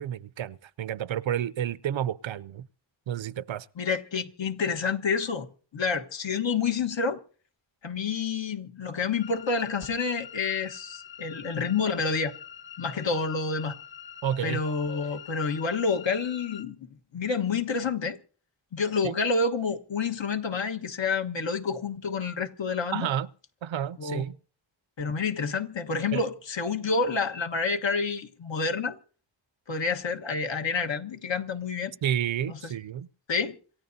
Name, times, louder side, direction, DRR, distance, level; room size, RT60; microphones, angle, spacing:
voice 1, 0.0-2.7 3.1-3.7 14.2-14.6 19.0-19.2 22.9-23.3 23.6-24.4 26.1-26.2 32.0-33.1, right 10 dB, 75° right, 0.6 m, -30 dB
voice 2, 3.8-5.5 5.7-7.2 7.8-12.3 12.8-13.7 14.4-16.9 17.1-18.2 18.7-23.1 24.0-24.2 25.0-28.9 29.7-31.9 32.5-32.6 33.3-33.6, left 4 dB, 70° left, 1.4 m, -28 dB
sound 1, 9.2-16.6, left 9 dB, 25° left, 1.0 m, -45 dB
27.0 x 14.5 x 2.7 m
wide cardioid pair, 90°, 46 cm